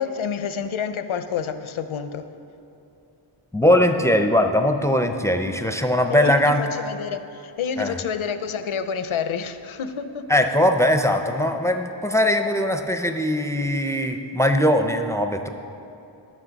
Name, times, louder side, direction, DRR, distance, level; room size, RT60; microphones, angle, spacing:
voice 1, 0.0-2.2 6.1-10.2, left 7 dB, 80° left, 10 dB, 0.7 m, -28 dB
voice 2, 3.5-6.6 7.8-8.0 10.3-15.5, left 1 dB, 5° left, 6 dB, 0.5 m, -20 dB
18.0 x 6.4 x 4.0 m, 2.8 s
wide cardioid pair, 130°, 48 cm